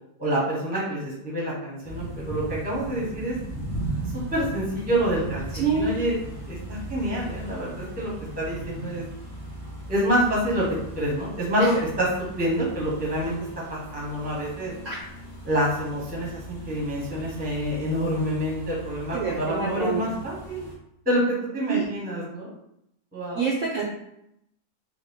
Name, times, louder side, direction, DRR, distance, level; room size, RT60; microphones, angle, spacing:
voice 1, 0.2-3.4 4.3-5.4 5.8-6.2 6.5-9.0 9.9-12.1 12.4-13.3 13.7-14.7 15.4-20.6 21.0-22.5 23.1-23.4, equal, 10° right, -5 dB, 0.7 m, -27 dB
sound 1, 1.8-20.7, right 1 dB, 35° left, 0.3 m, -37 dB
voice 2, 5.5-5.9 14.8-15.0 19.1-20.1 21.7-21.9 23.4-23.8, right 5 dB, 65° right, -4 dB, 0.8 m, -26 dB
3.6 x 2.2 x 3.5 m, 0.78 s
omnidirectional pair, 1.8 m